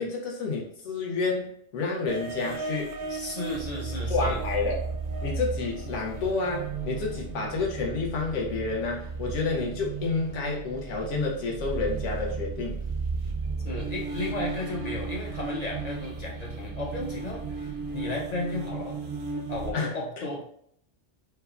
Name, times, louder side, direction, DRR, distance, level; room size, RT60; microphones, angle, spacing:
voice 1, 0.0-2.9 4.1-4.8 5.2-12.8 19.7-19.9, left 4 dB, 90° left, -1 dB, 1.0 m, -29 dB
sound 1, 2.1-19.7, right 4 dB, 80° right, 0.9 m, -34 dB
voice 2, 3.1-4.4 5.9-6.0 13.7-19.0 19.5-20.4, left 2 dB, 60° left, -2 dB, 0.4 m, -34 dB
3.2 x 2.2 x 2.3 m, 0.68 s
omnidirectional pair, 1.2 m